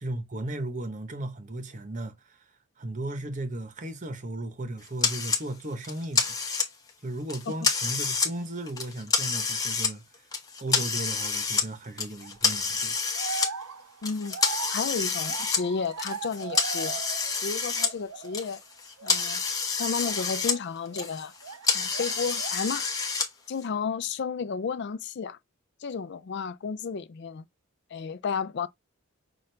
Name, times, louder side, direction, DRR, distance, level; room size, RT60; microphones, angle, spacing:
voice 1, 0.0-2.4 2.8-6.4 7.0-10.0 10.6-12.9, right 1 dB, 35° right, 0.8 m, -35 dB
sound 1, 5.0-5.4 5.8-6.9 7.3-8.3 8.7-9.9 10.3-11.7 12.0-13.5 14.0-17.9 18.2-20.6 20.9-23.3, left 5 dB, 15° left, 0.9 m, -28 dB
sound 2, 12.2-12.5 13.1-17.5 17.8-18.6 19.0-19.2 20.0-21.7 21.9-22.7, right 5 dB, 80° right, 0.6 m, -39 dB
voice 2, 14.0-17.0 17.4-18.6 19.0-19.4 19.7-21.3 21.7-22.9 23.5-25.4 25.8-27.4 27.9-28.7, left 5 dB, 50° left, 0.4 m, -32 dB
5.9 x 2.5 x 3.3 m
head